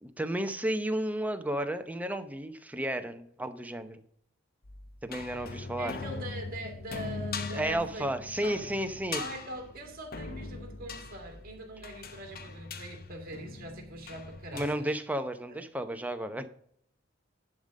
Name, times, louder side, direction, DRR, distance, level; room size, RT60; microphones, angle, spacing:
voice 1, 0.0-4.0 5.0-5.9 7.5-9.2 14.5-16.5, right 1 dB, 10° right, 8 dB, 0.7 m, -32 dB
sound 1, 4.6-14.8, left 4 dB, 50° left, 0.8 m, -41 dB
voice 2, 5.2-8.7 9.1-15.0 15.5-15.6, right 1 dB, 50° right, 3 dB, 2.3 m, -42 dB
11.0 x 3.8 x 6.4 m, 0.67 s
head